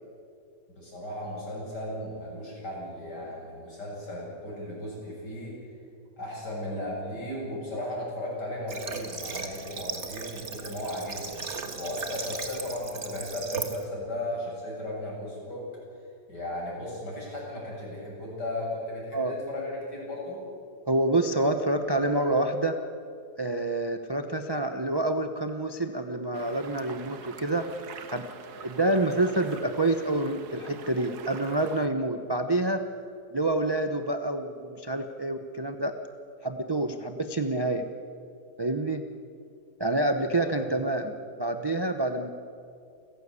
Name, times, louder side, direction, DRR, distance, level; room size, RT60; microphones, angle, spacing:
voice 1, 0.7-5.5 6.2-11.4 11.7-15.6 16.3-20.4 40.4-40.5, left 1 dB, 70° left, -4 dB, 8.4 m, -36 dB
Water / Water tap faucet, 8.7-13.8, right 4 dB, 40° right, 1.9 m, -37 dB
voice 2, 20.9-22.8 23.4-27.7 28.1-28.2 28.5-32.8 33.3-35.9 36.4-37.8 38.6-39.1 39.8-42.3, right 2 dB, 20° right, 7 dB, 0.8 m, -27 dB
sound 1, 26.3-31.9, right 7 dB, 65° right, 1.6 m, -45 dB
29.5 x 15.0 x 8.4 m, 2.4 s
omnidirectional pair, 1.9 m